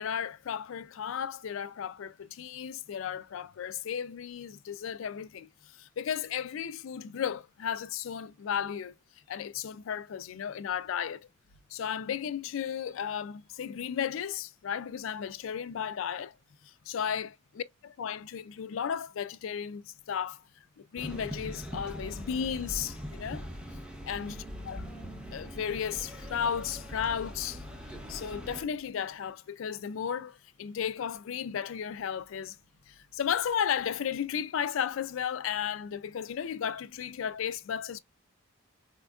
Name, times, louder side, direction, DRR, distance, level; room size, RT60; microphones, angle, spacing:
voice 1, 0.0-5.5 5.7-8.9 9.3-11.3 11.7-16.3 16.6-23.4 24.0-24.9 25.1-27.6 28.1-32.6 32.9-38.0, left 8 dB, 65° left, 0.4 m, -34 dB
sound 1, 21.0-28.6, equal, 5° right, 0.6 m, -41 dB
4.3 x 2.4 x 2.3 m
head